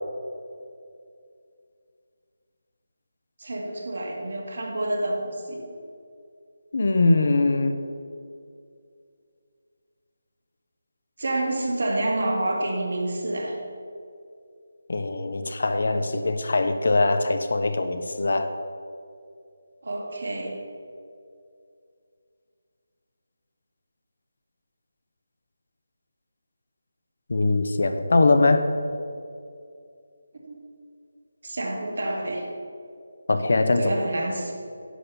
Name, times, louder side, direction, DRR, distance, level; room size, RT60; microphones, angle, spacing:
voice 1, 3.4-5.6 11.2-13.6 19.8-20.6 30.4-30.6 31.4-32.5 33.8-34.5, right 1 dB, 65° right, 0 dB, 2.2 m, -28 dB
voice 2, 6.7-7.7 14.9-18.5 27.3-28.7 33.3-33.9, left 2 dB, 65° left, 8 dB, 0.8 m, -22 dB
10.0 x 5.5 x 6.8 m, 2.4 s
figure-of-eight pair, 160°, 0 cm